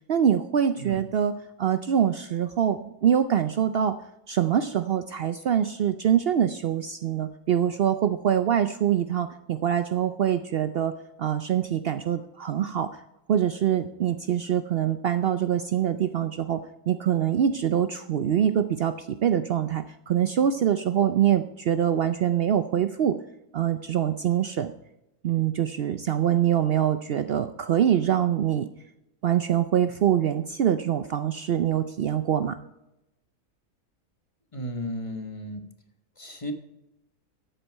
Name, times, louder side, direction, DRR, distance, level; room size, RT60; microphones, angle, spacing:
voice 1, 0.1-1.3 1.6-3.9 4.3-10.9 11.2-12.9 13.3-23.2 23.5-24.7 25.2-28.7 29.2-32.6, right 9 dB, 90° right, 11 dB, 0.5 m, -24 dB
voice 2, 34.5-35.6 36.2-36.5, equal, 20° left, 6 dB, 1.1 m, -34 dB
13.5 x 8.1 x 4.6 m, 0.88 s
omnidirectional pair, 1.7 m